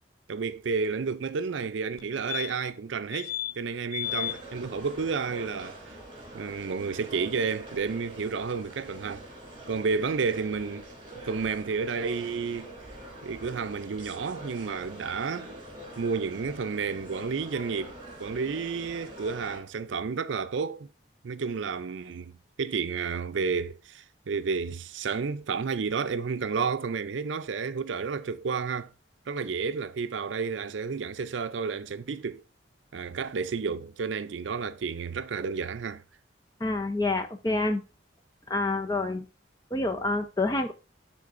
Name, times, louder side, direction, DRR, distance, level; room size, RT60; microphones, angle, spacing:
voice 1, 0.3-5.8 6.3-9.3 9.7-10.9 11.2-12.7 13.2-15.5 16.0-17.9 18.2-20.9 21.2-28.9 29.3-32.4 32.9-36.0, right 5 dB, 75° right, 0.5 m, -31 dB
sound 1, 2.0-2.1 2.3-2.8 3.1-3.5 3.9-4.4 6.7-6.8 7.0-7.1, left 13 dB, 85° left, 0.4 m, -33 dB
sound 2, 4.0-19.6, right 1 dB, 25° right, 2.8 m, -44 dB
voice 2, 36.6-37.8 38.5-39.2 39.7-40.7, left 2 dB, 20° left, 0.6 m, -27 dB
11.5 x 3.8 x 2.5 m
head